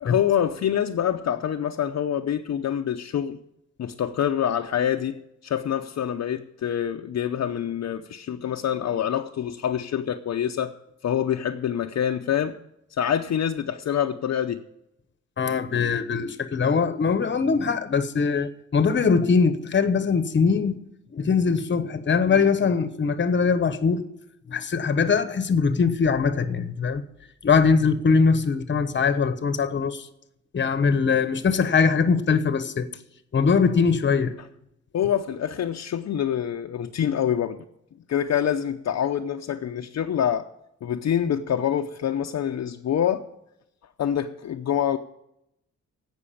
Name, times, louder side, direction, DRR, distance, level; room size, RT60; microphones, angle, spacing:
voice 1, 0.0-3.4 3.8-10.7 11.0-12.6 13.0-14.6 34.9-37.6 38.1-40.5 40.8-43.2 44.0-45.0, left 9 dB, 65° left, 0.7 m, -26 dB
voice 2, 15.4-20.8 21.1-24.0 24.5-27.0 27.4-30.1 30.5-32.9 33.3-34.3, left 5 dB, 40° left, 1.0 m, -22 dB
16.5 x 6.2 x 8.4 m
wide cardioid pair, 170°, 29 cm